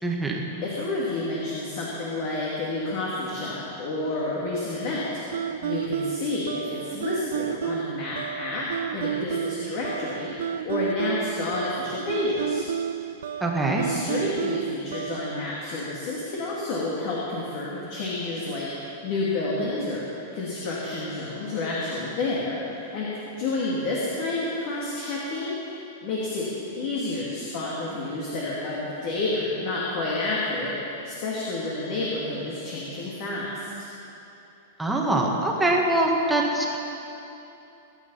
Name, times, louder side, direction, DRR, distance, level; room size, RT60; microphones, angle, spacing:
voice 1, 0.0-0.4 13.4-13.9 34.8-36.8, right 2 dB, 5° right, -2 dB, 1.6 m, -23 dB
voice 2, 0.6-5.0 5.6-8.6 8.9-12.7 13.8-23.1 23.4-26.5 26.7-33.9, left 2 dB, 45° left, -5 dB, 2.5 m, -30 dB
sound 1, 5.3-15.4, right 9 dB, 85° right, 0.6 m, -31 dB
21.5 x 10.0 x 5.7 m, 2.9 s
supercardioid pair, 160°, 0 cm